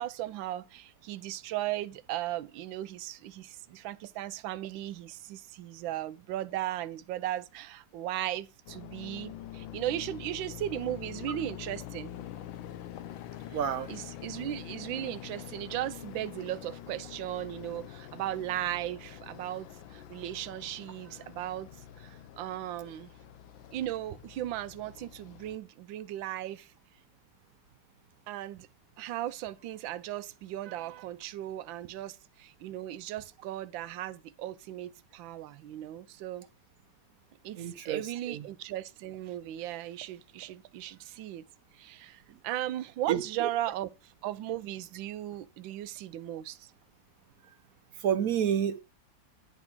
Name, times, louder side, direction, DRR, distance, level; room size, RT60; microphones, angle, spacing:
voice 1, 0.0-12.1 13.9-21.7 22.0-23.1 23.7-26.7 28.3-28.7 29.0-36.4 37.4-41.4 41.7-43.9 44.2-46.7, right 13 dB, 85° right, 1.3 m, -37 dB
sound 1, 8.7-25.6, left 11 dB, 90° left, 1.5 m, -45 dB
voice 2, 13.5-13.9 37.6-38.4 42.3-42.4 43.1-43.5 47.9-48.8, right 9 dB, 65° right, 0.9 m, -30 dB
9.8 x 3.6 x 5.9 m
omnidirectional pair, 2.1 m